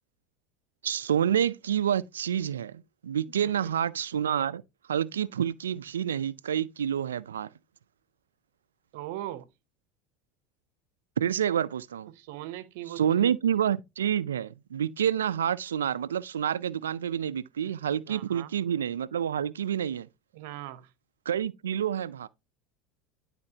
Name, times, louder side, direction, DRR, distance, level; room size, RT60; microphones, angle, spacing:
voice 1, 0.8-4.6 4.9-7.5 11.2-12.1 13.0-20.1 21.3-22.3, right 9 dB, 90° right, 0.3 m, -28 dB
voice 2, 8.9-9.5 12.1-13.3 17.6-17.7 18.1-18.5 20.3-20.9, right 14 dB, 70° right, 0.7 m, -40 dB
11.0 x 4.2 x 2.8 m
hypercardioid pair, 85°, 0 cm